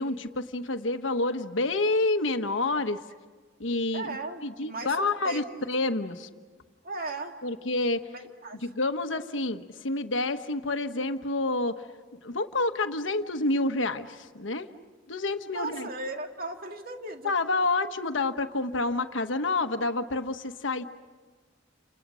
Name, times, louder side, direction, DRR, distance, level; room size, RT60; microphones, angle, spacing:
voice 1, 0.0-3.0 3.6-4.2 4.4-6.3 7.4-8.1 8.6-11.8 12.2-14.7 15.1-15.9 17.2-20.8, left 2 dB, 75° left, 8 dB, 1.3 m, -28 dB
voice 2, 3.9-5.4 6.8-7.3 8.1-8.6 15.5-17.3, right 2 dB, 50° right, 4 dB, 2.3 m, -37 dB
30.0 x 28.0 x 6.3 m, 1.4 s
head